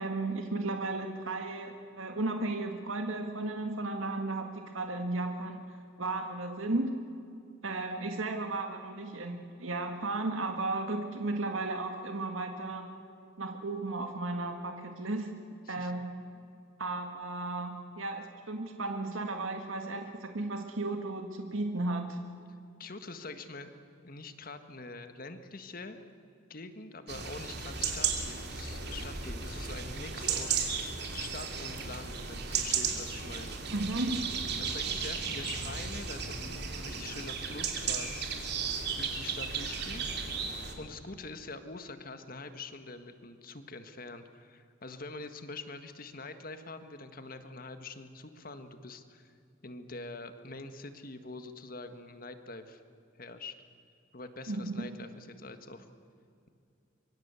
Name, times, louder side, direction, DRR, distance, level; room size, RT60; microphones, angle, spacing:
voice 1, 0.0-6.9 7.6-12.9 13.4-15.3 15.7-16.2 16.8-22.2 33.7-34.4 54.5-54.9, right 2 dB, 85° right, 5 dB, 1.8 m, -34 dB
voice 2, 22.8-23.7 24.0-26.0 26.5-30.7 31.1-33.6 34.6-38.3 38.9-40.1 40.8-49.3 49.6-52.8 53.2-53.5 54.1-55.8, left 3 dB, 45° left, 9 dB, 1.6 m, -45 dB
sound 1, 27.1-40.7, right 6 dB, 55° right, 3.0 m, -35 dB
24.5 x 24.0 x 8.3 m, 2.5 s
head